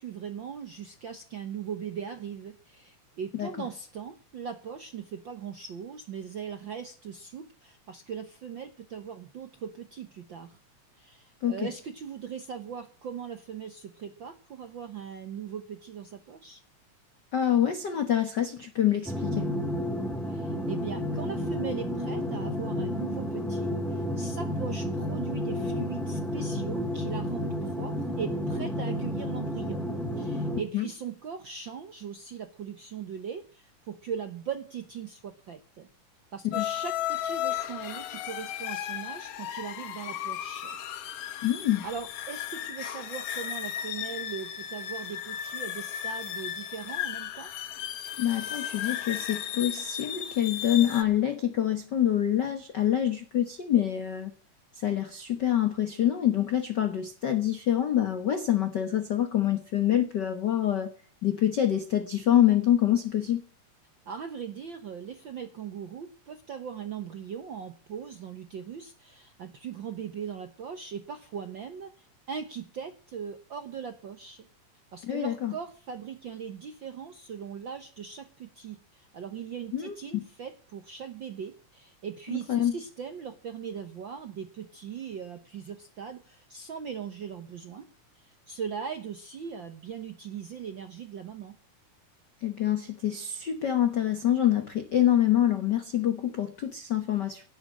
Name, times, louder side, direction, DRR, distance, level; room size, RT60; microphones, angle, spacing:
voice 1, 0.0-10.6 10.9-16.6 20.3-29.9 30.2-35.9 36.3-40.8 41.8-47.5 64.1-74.5 74.9-87.8 88.2-91.6, right 7 dB, 65° right, 8 dB, 1.2 m, -39 dB
voice 2, 17.3-19.5 30.7-30.9 36.4-36.7 41.4-41.8 48.2-54.3 54.7-60.9 61.2-63.4 75.0-75.5 79.7-79.9 82.3-82.8 92.4-97.4, left 11 dB, 55° left, 8 dB, 1.3 m, -26 dB
sound 1, 19.1-30.6, left 1 dB, ahead, 1.0 m, -31 dB
sound 2, 36.5-51.0, left 11 dB, 90° left, 2.9 m, -35 dB
17.5 x 7.9 x 8.6 m, 0.40 s
omnidirectional pair, 3.6 m